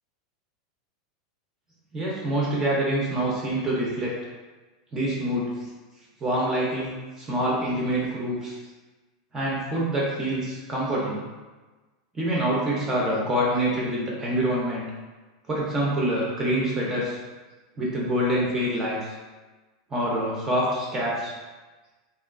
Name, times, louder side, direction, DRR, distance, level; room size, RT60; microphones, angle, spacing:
voice 1, 1.9-4.2 4.9-5.7 6.2-8.6 9.3-11.3 12.1-14.9 15.5-17.2 17.8-19.1 19.9-21.3, right 1 dB, 15° right, -5 dB, 0.4 m, -26 dB
2.8 x 2.2 x 2.3 m, 1.2 s
supercardioid pair, 160°, 3 cm